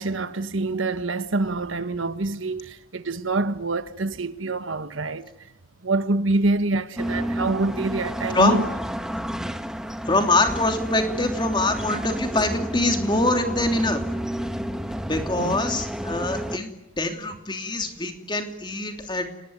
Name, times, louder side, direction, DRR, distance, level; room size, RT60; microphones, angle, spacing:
voice 1, 0.0-5.5 5.8-8.6 15.4-15.6, right 2 dB, 75° right, 1.4 m, -26 dB
sound 1, 7.0-16.6, equal, 5° right, 1.3 m, -30 dB
voice 2, 10.1-14.0 15.0-19.3, left 2 dB, 20° left, 3.0 m, -24 dB
29.0 x 19.5 x 9.4 m
head